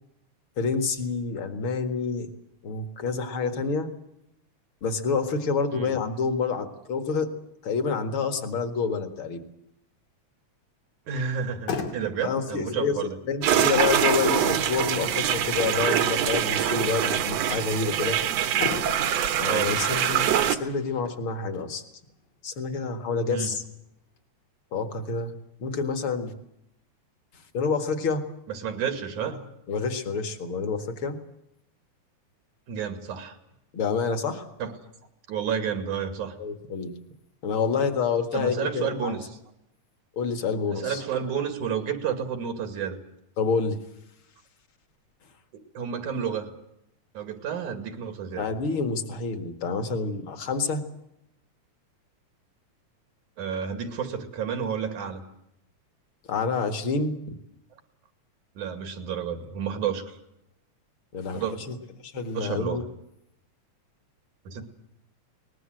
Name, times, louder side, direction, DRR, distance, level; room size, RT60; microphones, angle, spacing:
voice 1, 0.6-2.3 2.6-3.9 4.8-7.3 7.6-9.4 12.2-12.9 13.2-18.2 19.4-21.8 22.4-23.6 24.7-25.3 25.6-26.3 27.5-28.2 29.7-31.2 33.7-34.4 36.4-36.9 37.4-39.1 40.2-41.0 43.4-43.8 48.3-50.8 56.3-57.4 61.1-61.8 62.0-62.8, left 5 dB, 45° left, 8 dB, 2.4 m, -28 dB
voice 2, 11.1-13.2 19.5-19.7 23.3-23.5 28.5-29.4 32.7-33.4 34.6-34.7 35.3-36.4 38.3-39.3 40.7-43.0 45.8-46.5 47.1-48.5 53.4-55.2 58.6-60.2 61.3-61.6 62.3-62.8 64.5-64.7, right 7 dB, 85° right, 8 dB, 3.6 m, -30 dB
Motor vehicle (road), 11.3-24.2, left 5 dB, 75° left, 4.1 m, -41 dB
sound 1, 13.4-20.6, right 10 dB, 65° right, 2.2 m, -24 dB
22.5 x 20.0 x 7.8 m, 0.80 s
omnidirectional pair, 3.4 m